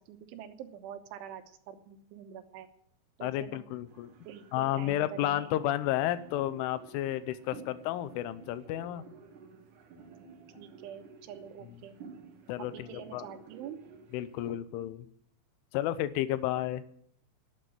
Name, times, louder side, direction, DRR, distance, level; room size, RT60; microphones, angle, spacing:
voice 1, 0.1-2.7 3.2-3.6 4.3-5.5 10.6-12.0 12.6-13.8, right 8 dB, 90° right, 9 dB, 3.5 m, -46 dB
voice 2, 3.2-4.1 4.5-9.0 12.5-13.3 14.1-15.1 15.7-16.8, left 13 dB, 90° left, 14 dB, 3.3 m, -32 dB
sound 1, 3.9-14.5, right 5 dB, 60° right, 2.4 m, -53 dB
12.0 x 9.1 x 9.2 m, 0.66 s
omnidirectional pair, 5.5 m